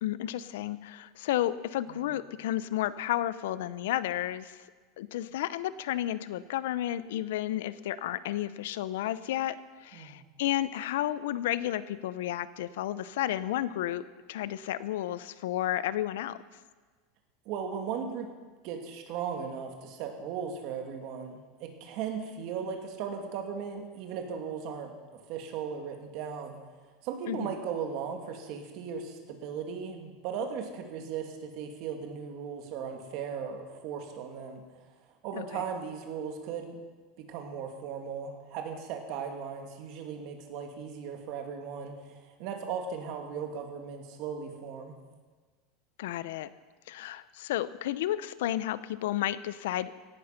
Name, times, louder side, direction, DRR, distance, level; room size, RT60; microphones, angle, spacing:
voice 1, 0.0-4.6 5.0-14.0 14.3-16.4 27.3-27.5 35.3-35.6 46.0-46.5 46.9-50.0, left 13 dB, 80° left, 16 dB, 0.7 m, -32 dB
voice 2, 17.5-18.3 18.6-26.6 27.0-34.6 35.2-36.8 37.2-45.0, right 6 dB, 50° right, 4 dB, 2.4 m, -37 dB
17.0 x 12.0 x 5.9 m, 1.4 s
supercardioid pair, 160°, 0 cm